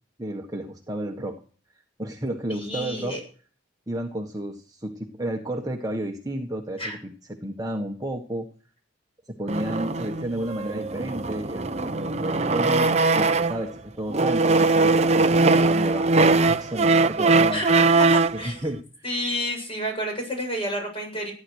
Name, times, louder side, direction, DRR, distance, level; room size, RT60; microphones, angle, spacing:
voice 1, 0.2-1.4 2.0-3.2 3.9-7.1 7.4-8.5 9.3-17.6 18.3-18.8, right 1 dB, 20° right, 2 dB, 1.5 m, -32 dB
voice 2, 2.5-3.2 6.8-7.0 17.5-18.7 19.0-21.3, equal, 30° left, 2 dB, 7.8 m, -30 dB
sound 1, 9.5-13.7 14.1-18.4, right 3 dB, 35° right, 0.8 m, -21 dB
15.0 x 10.5 x 6.5 m, 0.40 s
head